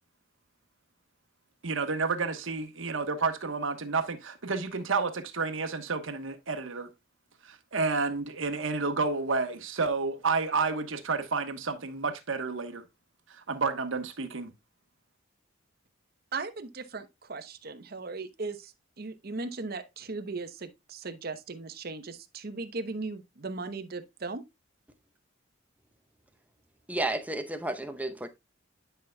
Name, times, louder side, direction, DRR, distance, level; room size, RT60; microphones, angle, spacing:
voice 1, 1.6-6.9 7.4-12.8 13.3-14.5, right 4 dB, 80° right, 1.1 m, -30 dB
voice 2, 16.3-24.4, right 3 dB, 50° right, 0.8 m, -38 dB
voice 3, 26.9-28.3, right 1 dB, 10° right, 0.7 m, -32 dB
10.0 x 5.6 x 2.2 m
head